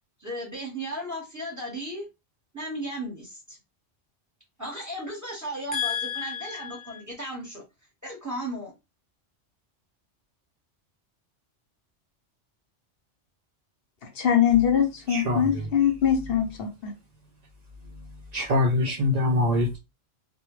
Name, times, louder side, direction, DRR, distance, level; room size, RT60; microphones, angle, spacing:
voice 1, 0.2-2.1 2.5-3.6 4.6-7.6 8.0-8.7, right 1 dB, 15° right, 0.9 m, -35 dB
voice 2, 5.7-6.8 14.1-16.9, left 9 dB, 65° left, 0.7 m, -24 dB
voice 3, 15.1-15.7 18.3-19.8, left 2 dB, 65° right, 0.4 m, -24 dB
2.2 x 2.0 x 2.9 m
omnidirectional pair, 1.2 m